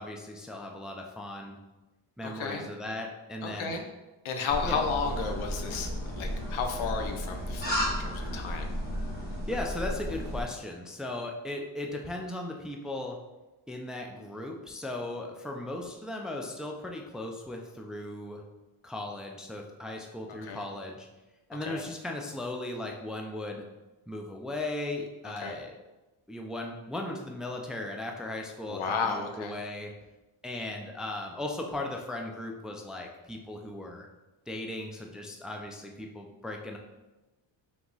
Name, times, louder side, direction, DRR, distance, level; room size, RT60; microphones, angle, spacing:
voice 1, 0.0-1.6 2.2-3.7 4.6-4.8 9.5-13.2 13.7-18.4 18.8-21.1 21.5-23.7 24.1-25.7 26.3-29.9 30.4-34.1 34.5-36.8, left 2 dB, ahead, 1 dB, 0.4 m, -37 dB
voice 2, 2.2-2.7 3.4-3.9 4.2-8.7 20.3-20.6 21.7-21.8 25.2-25.6 28.7-29.6, left 5 dB, 85° left, 4 dB, 0.7 m, -33 dB
sound 1, 4.5-10.4, equal, 20° left, 1.4 m, -33 dB
3.5 x 2.9 x 3.9 m, 1.1 s
cardioid pair, 85°, 47 cm